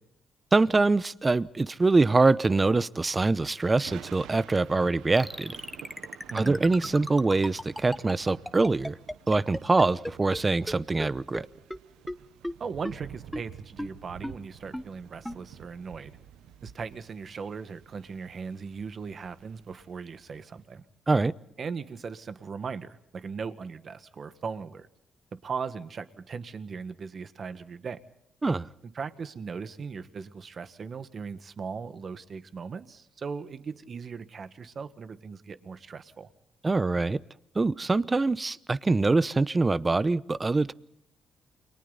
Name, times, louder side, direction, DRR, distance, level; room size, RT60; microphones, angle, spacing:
voice 1, 0.5-5.5 6.3-9.0 9.3-11.5 21.1-21.3 28.4-28.7 36.6-37.2 37.5-40.7, right 3 dB, 25° right, 17 dB, 0.8 m, -24 dB
Thunder / Rain, 3.0-20.5, right 9 dB, 90° right, 1.1 m, -50 dB
sound 1, 5.2-10.4 10.7-10.8 11.0-11.1 11.3-11.4 11.7-11.8 12.1-12.2 12.4-12.5 12.8-12.9 13.3-13.4 13.8-13.9 14.2-14.3 14.7-14.8 15.2-15.4, equal, ahead, 1.2 m, -34 dB
voice 2, 12.6-16.2 16.6-20.8 21.6-24.9 25.3-28.0 29.0-36.3, right 5 dB, 45° right, 11 dB, 1.6 m, -38 dB
29.0 x 23.5 x 4.1 m, 0.80 s
cardioid pair, 90°, 0 cm